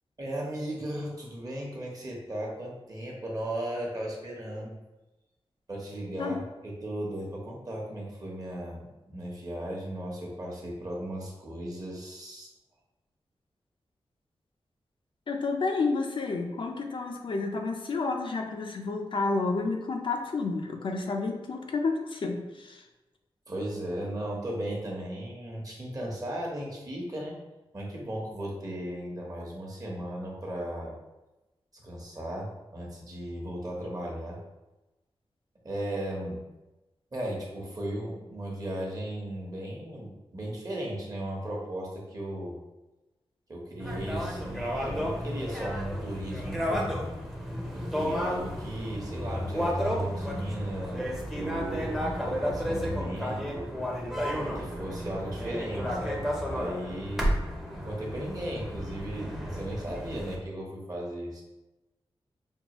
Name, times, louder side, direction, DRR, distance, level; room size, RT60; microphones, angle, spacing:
voice 1, 0.2-4.7 5.7-12.5 23.5-27.4 27.7-30.9 31.8-34.4 35.6-36.4 37.1-42.5 43.5-47.1 47.7-53.7 54.5-57.3 57.7-61.4, right 1 dB, 40° right, -3 dB, 1.0 m, -36 dB
voice 2, 15.3-22.8, left 3 dB, 60° left, 2 dB, 0.5 m, -30 dB
sound 1, 43.8-60.4, equal, 5° right, 0.6 m, -32 dB
5.3 x 2.3 x 2.9 m, 1.0 s
wide cardioid pair, 115°, 10 cm